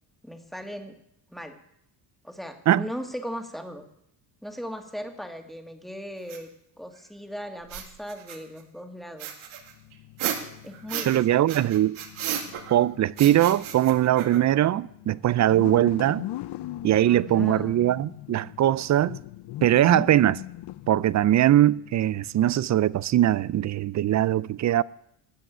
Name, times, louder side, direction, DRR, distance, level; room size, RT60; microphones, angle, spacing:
voice 1, 0.2-0.9 1.3-1.6 2.2-3.9 4.4-6.5 6.8-9.5 10.6-11.4 17.1-17.8, equal, ahead, 2.0 m, -38 dB
sound 1, 6.3-6.4 7.6-8.6 9.2-11.2 11.5-12.8 13.2-14.6, right 9 dB, 75° right, 2.3 m, -34 dB
sound 2, 9.6-23.0, left 15 dB, 55° left, 0.7 m, -41 dB
voice 2, 11.0-12.0 12.7-16.3 16.8-19.2 19.6-20.4 20.9-24.8, right 12 dB, 40° right, 0.4 m, -21 dB
13.0 x 7.5 x 9.3 m
cardioid pair, 90°, 48 cm